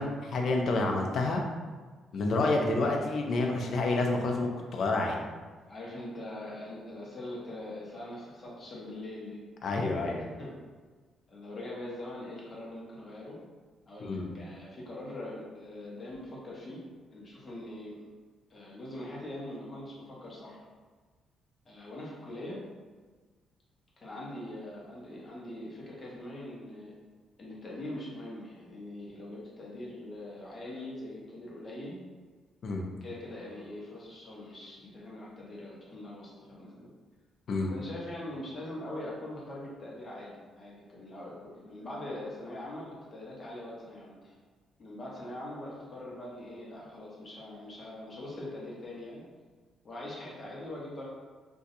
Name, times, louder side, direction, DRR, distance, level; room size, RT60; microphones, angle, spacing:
voice 1, 0.0-1.4 2.1-5.2 9.6-10.2 14.1-14.3 32.6-32.8 37.5-37.7, left 2 dB, 45° left, 1 dB, 0.5 m, -28 dB
voice 2, 5.7-9.4 10.4-10.5 11.3-13.4 13.9-16.8 17.1-18.1 18.5-20.6 21.7-22.6 24.0-26.9 27.4-32.0 33.0-36.9 37.7-44.3 44.8-49.2 49.8-51.1, left 1 dB, 25° left, -5 dB, 0.8 m, -42 dB
2.6 x 2.3 x 3.9 m, 1.4 s
cardioid pair, 170°, 0 cm